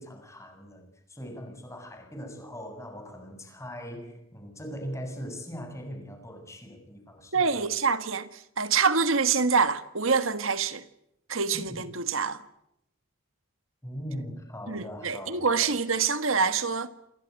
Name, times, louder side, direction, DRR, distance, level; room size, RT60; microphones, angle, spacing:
voice 1, 0.0-7.7 11.5-11.8 13.8-15.7, equal, 15° left, 7.4 m, -40 dB
voice 2, 7.3-10.8 11.3-12.4 14.7-16.9, right 5 dB, 65° right, 1.6 m, -26 dB
28.0 x 20.0 x 8.3 m
head